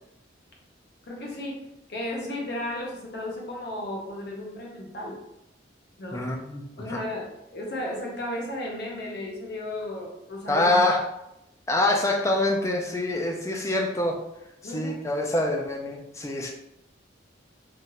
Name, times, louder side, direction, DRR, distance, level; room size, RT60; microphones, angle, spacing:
voice 1, 1.1-1.6 1.9-5.2 6.0-6.2 6.8-10.8 14.6-15.0, left 1 dB, 55° left, -1 dB, 0.7 m, -34 dB
voice 2, 6.1-7.0 10.5-11.0 11.7-14.2 14.6-16.5, left 1 dB, 15° left, 1 dB, 0.3 m, -25 dB
3.1 x 2.4 x 2.8 m, 0.85 s
head